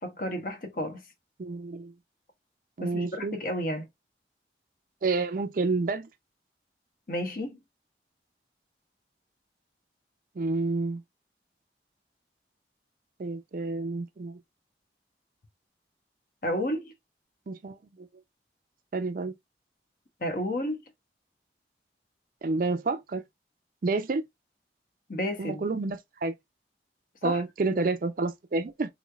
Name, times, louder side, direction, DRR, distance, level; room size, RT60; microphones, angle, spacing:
voice 1, 0.0-1.0 2.8-3.9 7.1-7.6 16.4-16.9 20.2-20.8 25.1-25.6 27.2-27.4 27.7-27.9, left 1 dB, 50° left, 0.8 m, -31 dB
voice 2, 1.4-1.9 2.8-3.4 5.0-6.1 10.4-11.0 13.2-14.4 17.5-18.1 18.9-19.3 22.4-23.2 23.8-24.3 25.4-26.3 27.2-28.9, right 3 dB, 50° right, 0.4 m, -29 dB
3.6 x 3.1 x 2.3 m
head